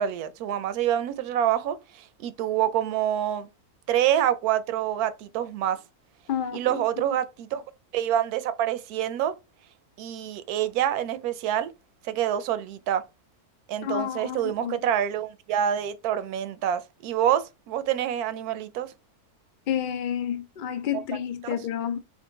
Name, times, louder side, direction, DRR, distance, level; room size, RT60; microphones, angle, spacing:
voice 1, 0.0-3.5 3.9-5.8 6.5-7.6 7.9-9.3 10.0-11.7 12.1-13.0 13.7-18.9 21.4-21.6, right 10 dB, 80° right, 1.1 m, -26 dB
voice 2, 6.3-6.8 13.8-14.8 19.7-22.0, left 9 dB, 90° left, 0.4 m, -30 dB
3.6 x 2.9 x 3.7 m
omnidirectional pair, 1.6 m